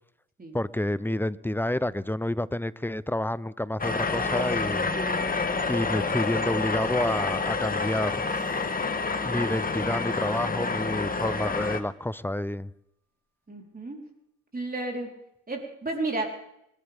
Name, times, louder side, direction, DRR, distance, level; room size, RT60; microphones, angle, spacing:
voice 1, 0.5-4.9 5.7-8.2 9.3-12.7, left 1 dB, 5° left, 0.6 m, -29 dB
sound 1, 3.8-11.8, left 4 dB, 25° left, 1.5 m, -28 dB
sound 2, 8.2-10.0, left 15 dB, 60° left, 4.0 m, -49 dB
voice 2, 13.5-14.0 14.5-15.1 15.5-16.3, right 2 dB, 25° right, 3.9 m, -32 dB
25.5 x 12.0 x 3.5 m
supercardioid pair, 60°, 35 cm